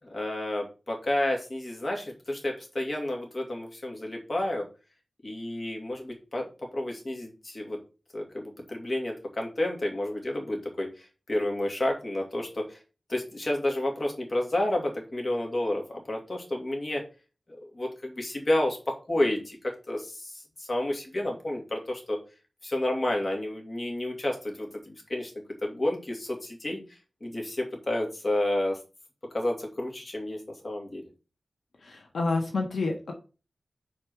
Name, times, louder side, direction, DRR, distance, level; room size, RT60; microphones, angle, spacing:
voice 1, 0.0-4.6 5.2-6.5 6.7-7.8 8.1-12.8 13.1-17.0 17.5-18.8 19.1-22.2 22.6-25.3 25.6-28.8 29.3-31.0, left 1 dB, 40° left, 1 dB, 2.4 m, -30 dB
voice 2, 31.8-33.1, left 3 dB, 90° left, 2 dB, 1.4 m, -29 dB
5.3 x 4.4 x 6.2 m, 0.33 s
wide cardioid pair, 100°, 0 cm